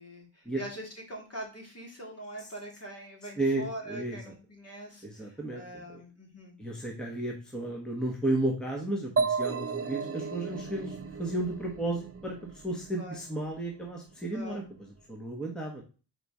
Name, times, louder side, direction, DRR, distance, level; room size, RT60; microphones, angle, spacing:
voice 1, 0.0-6.5 13.0-13.2 14.3-14.6, right 1 dB, 35° left, 0 dB, 2.4 m, -43 dB
voice 2, 3.4-4.2 5.0-5.8 6.6-14.6 15.1-15.8, right 2 dB, ahead, -1 dB, 1.2 m, -33 dB
sound 1, 9.2-12.8, right 5 dB, 30° right, 0.6 m, -33 dB
4.9 x 4.2 x 4.8 m, 0.35 s
cardioid pair, 105°, 44 cm